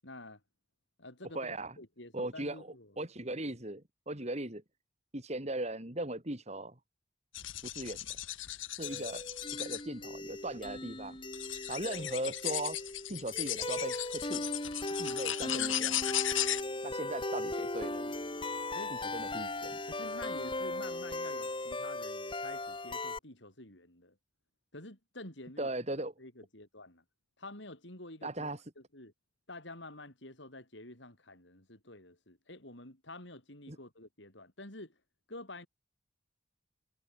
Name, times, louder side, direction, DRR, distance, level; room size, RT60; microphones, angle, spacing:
voice 1, 0.0-0.4 1.0-3.0 8.9-9.0 18.7-18.9 19.9-24.2 24.7-25.7 26.2-27.0 27.4-28.5 28.8-29.1 29.5-35.0 35.3-35.7, left 2 dB, 65° left, 7.4 m, -49 dB
voice 2, 1.3-1.7 2.1-4.6 5.1-6.8 7.6-8.0 8.8-9.2 9.6-11.2 11.7-12.8 13.1-14.5 15.0-16.0 16.8-18.1 19.1-19.8 25.6-26.1 28.2-28.6 33.7-33.8, right 1 dB, 35° right, 3.9 m, -38 dB
sound 1, 7.3-9.8 10.7-10.8 11.3-16.6, left 14 dB, 90° left, 1.7 m, -36 dB
sound 2, 8.8-23.2, left 2 dB, 25° left, 5.6 m, -38 dB
head